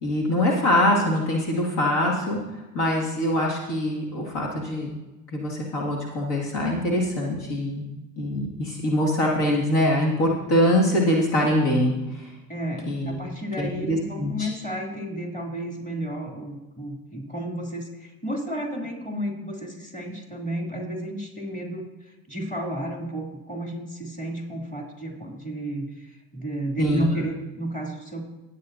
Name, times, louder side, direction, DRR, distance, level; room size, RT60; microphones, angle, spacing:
voice 1, 0.0-5.0 5.3-7.8 8.2-12.3 12.9-13.2 13.6-14.5 26.8-27.1, left 1 dB, 65° left, -2 dB, 2.4 m, -23 dB
voice 2, 12.5-28.2, right 1 dB, 15° left, 0 dB, 3.1 m, -32 dB
18.0 x 8.4 x 2.8 m, 1.1 s
hypercardioid pair, 60°, 44 cm